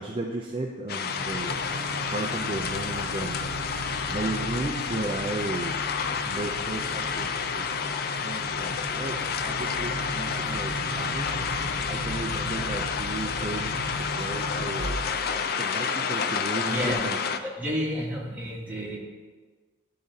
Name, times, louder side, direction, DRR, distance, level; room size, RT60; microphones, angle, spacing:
voice 1, 0.0-1.6 2.1-3.4 3.7-5.8 6.2-7.7 8.2-15.0 15.6-17.2, right 2 dB, 30° right, 0 dB, 0.4 m, -34 dB
sound 1, 0.9-17.4, left 6 dB, 45° left, 0.4 m, -30 dB
sound 2, 1.1-15.4, right 1 dB, 80° right, 0.7 m, -37 dB
voice 2, 16.6-17.0 17.4-19.0, equal, 10° right, -7 dB, 1.6 m, -30 dB
11.5 x 3.8 x 4.0 m, 1.4 s
head